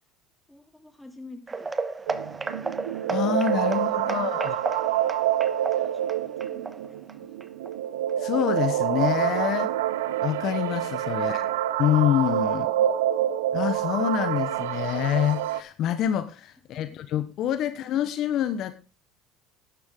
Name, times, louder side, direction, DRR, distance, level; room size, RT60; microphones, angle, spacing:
voice 1, 0.5-1.7 2.0-2.7 3.7-4.5 4.7-4.8 5.5-7.3 11.1-11.5 12.5-13.0 16.7-17.1, left 2 dB, 5° left, 5 dB, 2.9 m, -50 dB
sound 1, 1.5-8.1 8.4-8.7 9.1-9.2 9.7-9.8, right 3 dB, 20° right, 1.1 m, -34 dB
sound 2, 2.1-15.6, right 12 dB, 85° right, 0.7 m, -27 dB
voice 2, 3.1-4.6 8.2-9.7 10.2-11.5 11.8-12.7 13.5-18.7, left 11 dB, 60° left, 12 dB, 1.0 m, -26 dB
12.0 x 10.5 x 3.8 m, 0.33 s
supercardioid pair, 85°, 0 cm